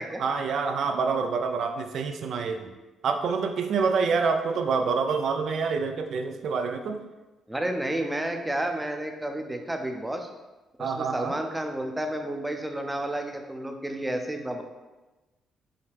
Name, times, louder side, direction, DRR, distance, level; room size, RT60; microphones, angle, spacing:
voice 1, 0.2-2.7 3.0-7.0 10.8-11.4, right 5 dB, 65° right, 6 dB, 0.4 m, -27 dB
voice 2, 7.5-10.3 10.8-14.6, right 1 dB, 10° right, 4 dB, 0.5 m, -31 dB
5.5 x 2.2 x 3.3 m, 1.1 s
cardioid pair, 90°, 0 cm